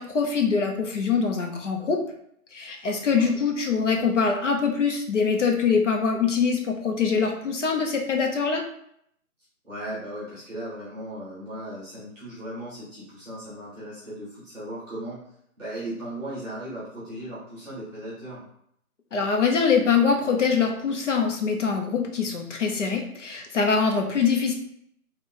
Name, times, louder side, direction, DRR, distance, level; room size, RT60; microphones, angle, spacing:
voice 1, 0.0-2.0 2.5-8.6 19.1-24.5, left 5 dB, 55° left, 2 dB, 0.9 m, -23 dB
voice 2, 2.7-3.3 9.6-15.2 15.6-18.4, right 1 dB, ahead, -19 dB, 1.0 m, -37 dB
3.8 x 2.5 x 3.7 m, 0.71 s
hypercardioid pair, 155°, 44 cm